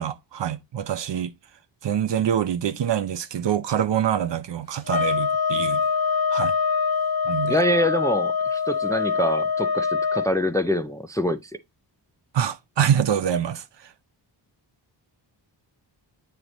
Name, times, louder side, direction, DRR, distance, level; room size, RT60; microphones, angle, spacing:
voice 1, 0.0-1.3 1.8-5.8 6.3-6.5 7.2-7.6 12.3-13.9, right 9 dB, 70° right, 0.6 m, -25 dB
sound 1, 4.9-10.3, left 6 dB, 55° left, 0.6 m, -24 dB
voice 2, 7.4-11.5, equal, 10° left, 0.3 m, -25 dB
8.8 x 3.2 x 4.0 m
wide cardioid pair, 155°, 44 cm